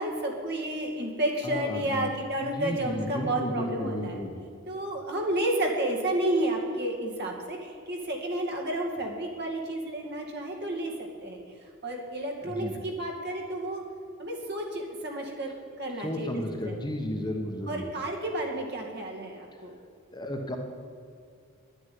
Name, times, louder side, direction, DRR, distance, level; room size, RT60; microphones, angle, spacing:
voice 1, 0.0-4.2 4.7-11.4 11.8-13.8 14.2-16.8 17.7-19.8, right 1 dB, 50° right, 0 dB, 2.3 m, -31 dB
voice 2, 1.4-2.1 2.4-4.3 12.6-12.7 16.0-17.8 20.1-20.6, left 1 dB, 20° left, 2 dB, 1.2 m, -33 dB
11.0 x 9.7 x 9.5 m, 2.3 s
head